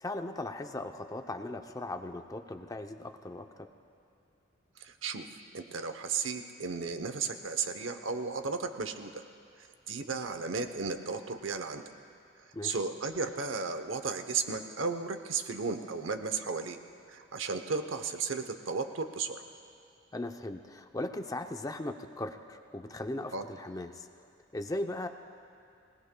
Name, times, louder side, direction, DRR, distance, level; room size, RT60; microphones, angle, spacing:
voice 1, 0.0-3.7 12.5-12.8 20.1-24.1 24.5-25.1, left 2 dB, 20° left, 6 dB, 0.6 m, -38 dB
voice 2, 4.8-5.2 5.5-9.2 9.9-11.8 12.6-16.8 17.1-19.4 23.3-23.5, right 4 dB, 75° right, 8 dB, 0.8 m, -34 dB
25.5 x 18.0 x 2.2 m, 2.5 s
head